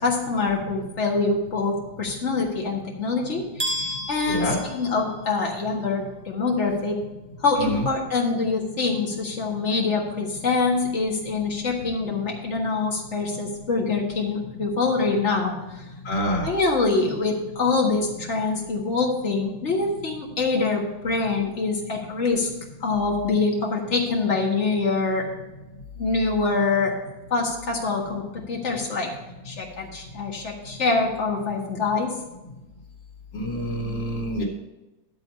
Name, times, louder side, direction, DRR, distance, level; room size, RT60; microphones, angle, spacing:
voice 1, 0.0-7.0 7.4-15.8 16.4-22.5 22.8-25.3 26.0-26.9 27.3-29.1 29.4-32.1, left 3 dB, 40° left, -1 dB, 1.8 m, -25 dB
sound 1, 3.6-5.6, equal, 30° right, 1.2 m, -32 dB
voice 2, 4.3-4.6 7.6-7.8 16.0-16.5 33.3-34.4, equal, 90° left, -5 dB, 2.8 m, -26 dB
11.5 x 4.0 x 6.8 m, 1.0 s
omnidirectional pair, 2.1 m